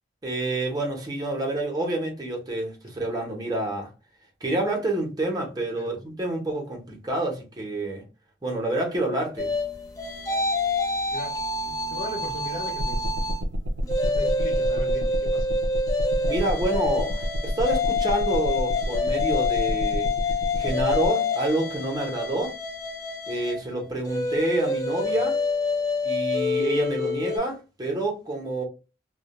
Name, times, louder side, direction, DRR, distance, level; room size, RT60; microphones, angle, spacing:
voice 1, 0.2-3.9 4.4-8.0 8.4-9.5 16.3-20.1 20.5-22.5 23.3-25.4 26.0-28.6, right 2 dB, 20° right, 0.7 m, -28 dB
sound 1, 9.4-13.4 13.8-27.4, left 3 dB, 20° left, 0.4 m, -27 dB
voice 2, 11.7-13.1 14.0-15.5 25.1-25.2, equal, 50° left, 0.9 m, -38 dB
sound 2, 12.8-21.1, equal, 85° right, 0.3 m, -29 dB
2.1 x 2.1 x 2.9 m
head